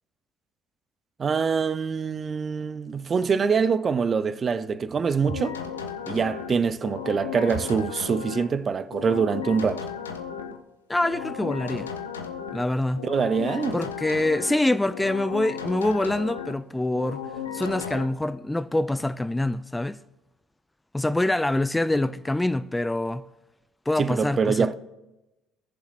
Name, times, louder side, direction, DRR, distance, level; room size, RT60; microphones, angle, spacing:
voice 1, 1.2-5.5 6.1-9.8 13.0-13.8 24.0-24.7, right 5 dB, 35° right, 0.6 m, -24 dB
sound 1, 5.2-8.5 8.9-10.6 11.0-12.7 13.0-14.6 14.9-16.6 17.0-18.1, left 7 dB, 90° left, 0.7 m, -35 dB
voice 2, 10.9-11.9 12.5-13.1 13.7-17.2 17.5-20.0 20.9-23.2 23.9-24.7, left 1 dB, 10° left, 0.4 m, -25 dB
17.5 x 7.1 x 2.5 m
hypercardioid pair, 60°, 0 cm